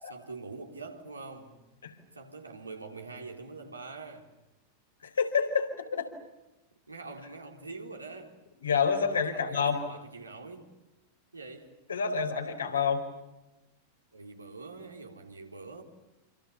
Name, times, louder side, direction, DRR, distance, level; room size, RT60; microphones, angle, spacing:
voice 1, 0.0-1.6 2.1-4.3 6.9-8.4 9.3-10.7 11.3-11.7 14.1-15.8, right 3 dB, 80° right, 4.0 m, -44 dB
voice 2, 5.0-6.1 8.6-9.8 11.9-13.1, left 6 dB, 70° left, 4.5 m, -28 dB
28.5 x 27.5 x 7.1 m
figure-of-eight pair, 90°, 0 cm